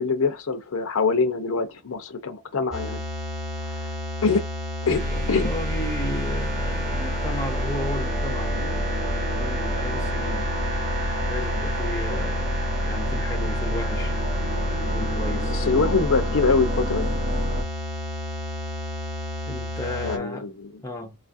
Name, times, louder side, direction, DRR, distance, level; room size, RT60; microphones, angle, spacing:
voice 1, 0.0-3.0 3.7-3.9 4.2-4.4 4.9-5.0 5.3-5.5 15.5-17.1 20.0-20.7, left 4 dB, 70° left, 0.6 m, -24 dB
sound 1, 2.7-20.2, left 2 dB, 5° right, 0.9 m, -32 dB
voice 2, 4.9-10.5 11.2-14.1 14.9-16.3 19.5-20.5 20.8-21.2, left 1 dB, 15° left, 0.6 m, -34 dB
sound 2, 4.9-17.6, equal, 35° right, 0.9 m, -28 dB
4.8 x 2.4 x 2.6 m
head